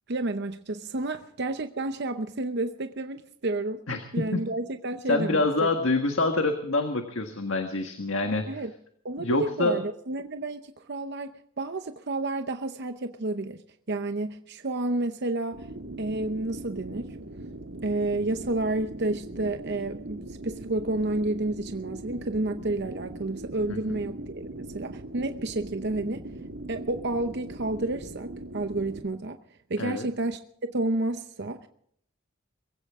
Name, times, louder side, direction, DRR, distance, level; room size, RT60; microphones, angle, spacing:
voice 1, 0.1-3.8 4.1-5.7 8.5-8.7 9.0-13.6 13.9-15.7 16.0-17.2 17.8-26.2 26.7-30.4 30.7-31.7, right 2 dB, 55° right, 0.8 m, -30 dB
voice 2, 5.1-8.6 9.2-9.8 23.7-24.0 29.8-30.1, left 2 dB, 70° left, 1.7 m, -26 dB
sound 1, 15.5-29.0, right 2 dB, 85° right, 1.9 m, -40 dB
22.5 x 16.0 x 3.7 m
head